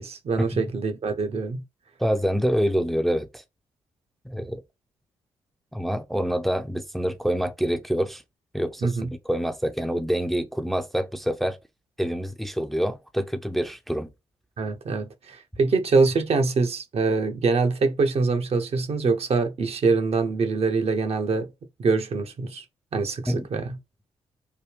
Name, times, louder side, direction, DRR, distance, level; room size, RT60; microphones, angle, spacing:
voice 1, 0.0-1.6 8.8-9.1 14.6-21.5 21.8-22.6 22.9-23.8, right 4 dB, 50° right, 0.8 m, -24 dB
voice 2, 2.0-3.4 4.2-4.6 5.7-8.2 8.5-11.6 12.0-14.1 23.3-23.5, equal, ahead, 0.6 m, -26 dB
3.5 x 2.2 x 3.1 m
hypercardioid pair, 40°, 13 cm